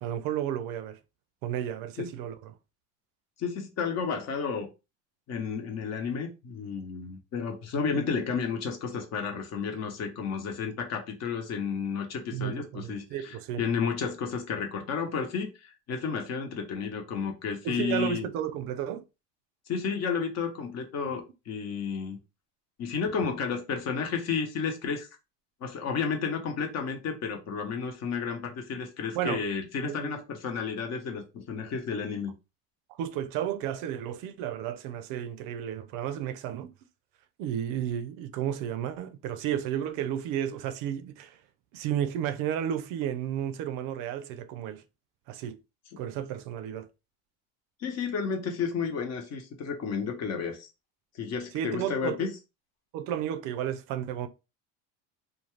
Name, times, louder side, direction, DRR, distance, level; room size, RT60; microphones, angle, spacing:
voice 1, 0.0-1.0 1.4-2.5 12.3-13.6 17.6-19.0 21.1-21.2 23.2-23.3 29.1-29.4 29.8-30.2 33.0-36.7 37.4-41.4 41.7-44.8 45.3-45.6 46.0-46.9 51.5-52.3 52.9-54.3, right 10 dB, 65° right, 0.5 m, -32 dB
voice 2, 3.4-4.7 5.3-18.3 19.7-22.2 22.8-25.1 25.6-32.3 45.9-46.0 47.8-50.7 51.1-52.3, left 6 dB, 45° left, 0.9 m, -32 dB
2.5 x 2.3 x 3.1 m
supercardioid pair, 115°, 35 cm